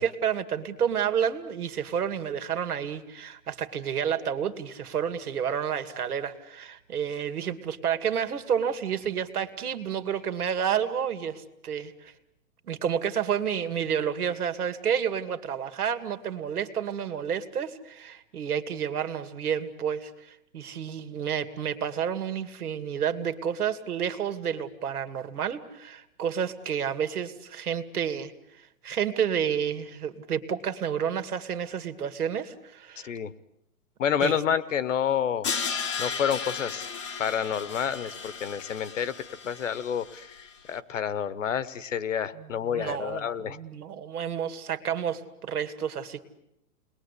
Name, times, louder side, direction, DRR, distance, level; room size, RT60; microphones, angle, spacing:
voice 1, 0.0-12.1 12.7-28.3 28.6-33.1 34.2-34.4 42.4-42.5 42.7-46.2, right 8 dB, 75° right, 10 dB, 2.5 m, -30 dB
voice 2, 33.0-33.3 34.0-35.5 36.0-36.9 37.2-43.6, left 8 dB, 55° left, 16 dB, 1.2 m, -29 dB
Crash cymbal, 35.4-40.5, left 6 dB, 20° left, 1.0 m, -35 dB
29.5 x 21.0 x 8.4 m, 0.81 s
hypercardioid pair, 180°, 45 cm